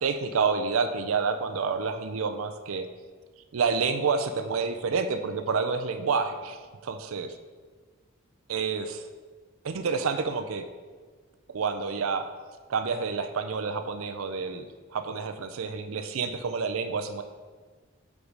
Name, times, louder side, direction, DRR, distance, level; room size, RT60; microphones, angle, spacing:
voice 1, 0.0-2.9 3.5-7.3 8.5-9.1 9.6-10.6 11.5-12.3 12.7-14.7 14.9-17.2, right 5 dB, 80° right, 8 dB, 0.5 m, -28 dB
5.0 x 4.8 x 5.2 m, 1.5 s
head